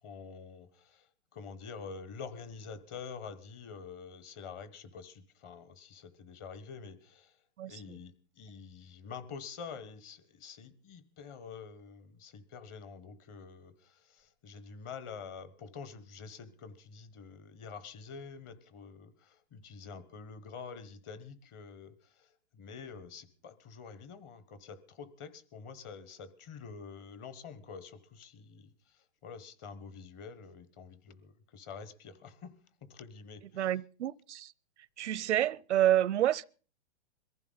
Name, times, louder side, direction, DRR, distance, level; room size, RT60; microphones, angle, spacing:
voice 1, 0.0-7.4 7.6-32.5 32.8-33.8, left 5 dB, 25° left, 1.1 m, -47 dB
voice 2, 7.6-8.0 33.5-34.5 35.0-36.4, right 12 dB, 90° right, 0.7 m, -29 dB
22.5 x 15.0 x 3.9 m
hypercardioid pair, 160°, 33 cm